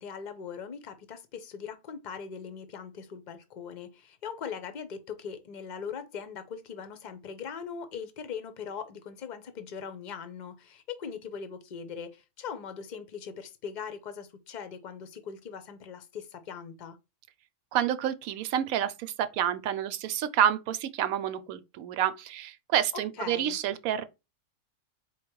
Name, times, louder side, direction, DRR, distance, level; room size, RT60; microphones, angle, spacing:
voice 1, 0.0-17.0 23.2-23.6, left 6 dB, 45° left, 0.6 m, -40 dB
voice 2, 17.7-24.0, right 10 dB, 80° right, 1.0 m, -29 dB
4.5 x 2.3 x 4.4 m
omnidirectional pair, 1.5 m